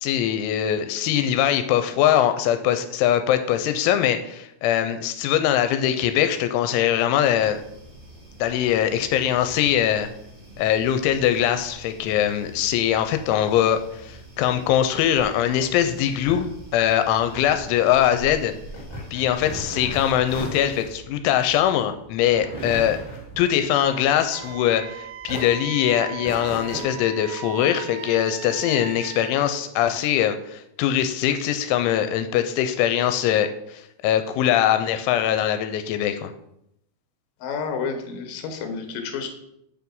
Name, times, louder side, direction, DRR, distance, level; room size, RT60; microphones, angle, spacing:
voice 1, 0.0-7.6 8.4-10.1 10.6-18.5 19.1-23.0 23.4-36.3, left 10 dB, 85° left, 9 dB, 2.9 m, -22 dB
sound 1, 7.2-20.4, right 1 dB, 30° right, 1.1 m, -44 dB
sound 2, 15.8-24.9 25.2-26.8, right 1 dB, 10° left, 1.1 m, -37 dB
Wind instrument woodwind instrument, 24.3-29.4, right 11 dB, 85° right, 2.6 m, -38 dB
voice 2, 37.4-39.3, left 5 dB, 70° left, 5 dB, 2.2 m, -30 dB
8.2 x 4.8 x 5.3 m, 0.78 s
omnidirectional pair, 5.5 m